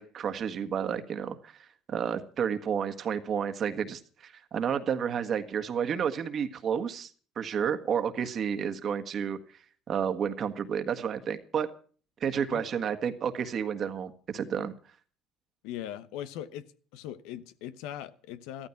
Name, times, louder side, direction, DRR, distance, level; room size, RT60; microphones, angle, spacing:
voice 1, 0.0-7.1 7.3-9.4 9.9-11.7 12.2-14.7, right 7 dB, 50° right, 1.7 m, -31 dB
voice 2, 15.6-18.7, left 11 dB, 80° left, 1.0 m, -40 dB
14.5 x 13.0 x 5.9 m
supercardioid pair, 85°, 0 cm